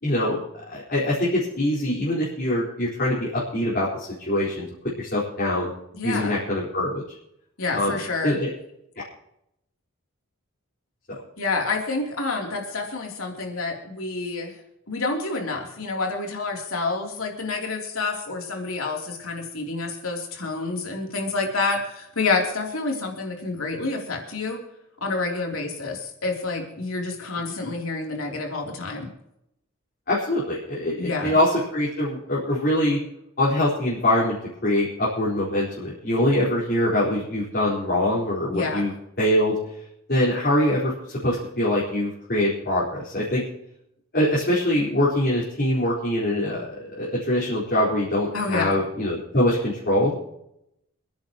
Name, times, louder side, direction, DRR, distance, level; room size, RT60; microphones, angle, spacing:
voice 1, 0.0-4.7 5.0-5.7 6.0-7.0 7.7-7.9 8.2-8.5 11.1-11.2 30.1-33.0 33.4-34.3 34.6-38.9 39.2-39.6 40.1-40.9 41.2-43.4 44.1-50.1, left 1 dB, 45° left, -8 dB, 4.6 m, -23 dB
voice 2, 5.9-6.4 7.6-8.4 11.4-14.5 14.9-24.6 25.0-29.1 31.0-31.4 38.5-38.8 48.3-48.7, left 3 dB, 75° left, 1 dB, 3.4 m, -28 dB
28.5 x 10.5 x 3.1 m, 0.81 s
head